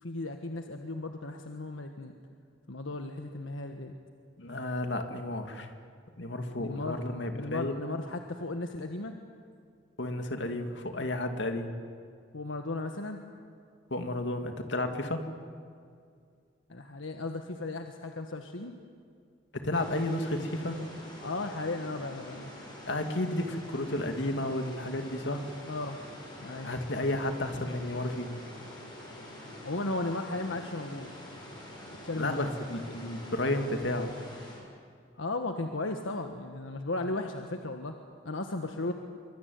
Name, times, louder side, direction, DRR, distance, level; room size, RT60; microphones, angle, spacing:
voice 1, 0.0-2.1 2.7-3.9 6.6-7.0 7.3-9.2 12.3-13.2 16.7-18.7 21.2-22.5 25.7-26.0 26.4-26.7 29.6-31.1 32.0-32.5 35.2-38.0 38.2-38.9, left 2 dB, 85° left, 5 dB, 1.5 m, -35 dB
voice 2, 4.4-5.7 6.2-7.7 10.0-11.7 13.9-15.3 19.5-20.8 22.8-25.5 26.6-28.3 32.1-34.1, left 1 dB, 70° left, 6 dB, 2.5 m, -32 dB
sound 1, 19.7-34.5, left 1 dB, 20° left, 7.6 m, -46 dB
24.5 x 24.0 x 9.6 m, 2.2 s
head